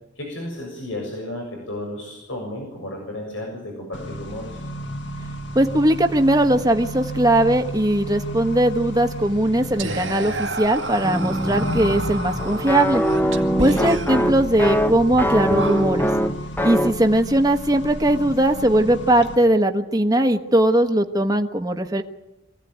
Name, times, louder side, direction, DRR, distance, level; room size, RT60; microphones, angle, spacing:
voice 1, 0.2-4.6 13.6-13.8, left 1 dB, 85° left, 0 dB, 7.1 m, -33 dB
Accelerating revving vroom, 3.9-19.3, equal, 70° left, 2.2 m, -33 dB
voice 2, 5.5-13.0 13.6-16.1 16.6-22.0, right 1 dB, 20° right, 5 dB, 1.3 m, -19 dB
Whispering, 9.8-16.3, right 2 dB, 90° right, 2.0 m, -32 dB
sound 1, 11.0-17.0, equal, 10° left, 1.1 m, -23 dB
25.5 x 17.0 x 9.5 m, 0.94 s
head